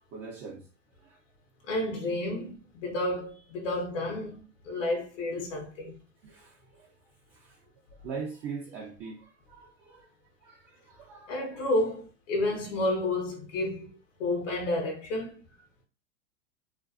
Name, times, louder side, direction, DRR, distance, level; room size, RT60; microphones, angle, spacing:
voice 1, 0.1-0.6 1.0-1.2 6.2-6.8 8.0-10.1 10.4-11.4, right 5 dB, 35° right, 0.6 m, -41 dB
voice 2, 1.7-6.0 11.3-13.9 14.2-15.4, left 1 dB, 70° left, 0.9 m, -31 dB
2.5 x 2.2 x 2.4 m
hypercardioid pair, 110°, 39 cm